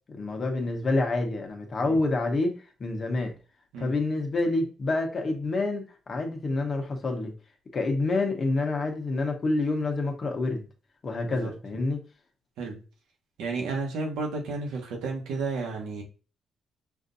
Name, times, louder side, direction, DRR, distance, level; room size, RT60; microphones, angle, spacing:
voice 1, 0.1-3.3 3.8-7.3 7.7-10.7 11.0-12.0, left 2 dB, 40° left, 4 dB, 1.0 m, -28 dB
voice 2, 13.4-16.0, right 3 dB, 85° right, 0 dB, 1.2 m, -32 dB
5.7 x 2.6 x 2.6 m, 0.35 s
cardioid pair, 90°, 0 cm